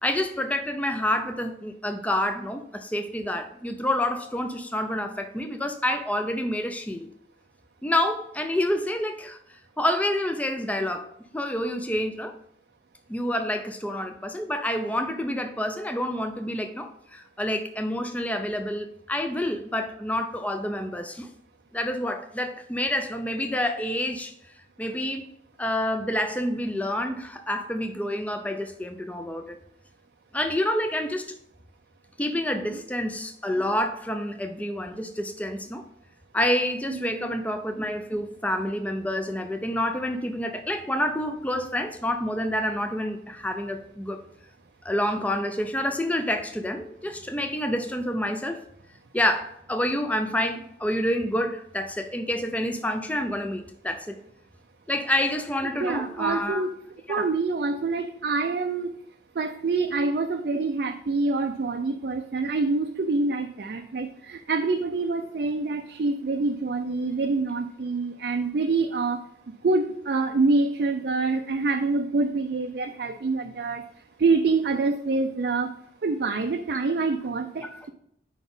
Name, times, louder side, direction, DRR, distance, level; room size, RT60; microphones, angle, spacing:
voice 1, 0.0-7.1 7.8-12.3 13.1-21.3 21.7-24.3 24.8-25.3 25.6-29.6 30.3-31.3 32.2-35.8 36.3-44.2 44.8-48.6 49.1-54.2 54.9-56.7 57.1-57.3 77.7-77.8, left 1 dB, 10° left, 7 dB, 0.4 m, -28 dB
voice 2, 36.9-37.4 55.8-58.9 59.4-69.2 69.6-73.9 74.2-75.7 76.0-77.9, right 3 dB, 55° right, 4 dB, 0.4 m, -26 dB
4.9 x 4.0 x 5.4 m, 0.71 s
head